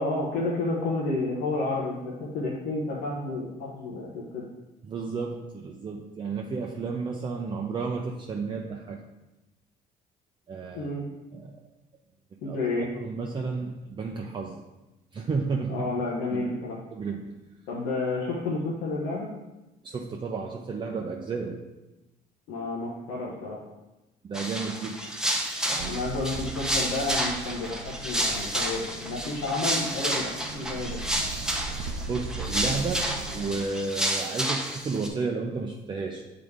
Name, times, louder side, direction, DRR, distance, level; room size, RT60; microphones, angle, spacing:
voice 1, 0.0-4.5 10.7-11.0 12.4-12.9 15.7-16.8 17.7-19.3 22.5-23.6 25.8-31.0, left 2 dB, 85° left, -5 dB, 1.1 m, -30 dB
voice 2, 4.8-9.0 10.5-10.9 11.3-11.6 12.5-12.6 12.9-14.6 15.1-15.9 16.3-16.4 16.9-17.4 19.8-21.6 24.2-25.0 25.7-26.0 32.1-36.2, right 4 dB, 30° right, 1 dB, 0.5 m, -32 dB
sound 1, 24.3-35.1, right 1 dB, 5° right, 0.8 m, -30 dB
sound 2, 25.8-33.7, right 3 dB, 85° right, 0.5 m, -39 dB
7.9 x 3.8 x 3.5 m, 1.0 s
cardioid pair, 110°, 17 cm